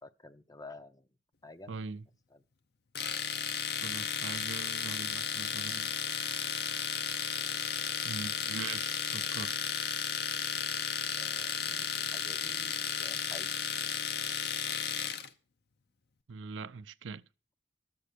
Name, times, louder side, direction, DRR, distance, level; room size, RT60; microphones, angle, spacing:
voice 1, 0.0-1.1 1.4-1.7 2.3-2.4 11.1-13.5, left 2 dB, 20° left, 0.6 m, -50 dB
voice 2, 1.7-2.1 3.8-6.0 8.0-9.5 16.3-17.3, right 4 dB, 75° right, 0.5 m, -42 dB
Domestic sounds home sounds, 2.9-15.3, left 7 dB, 55° left, 0.7 m, -34 dB
12.0 x 7.0 x 6.7 m
head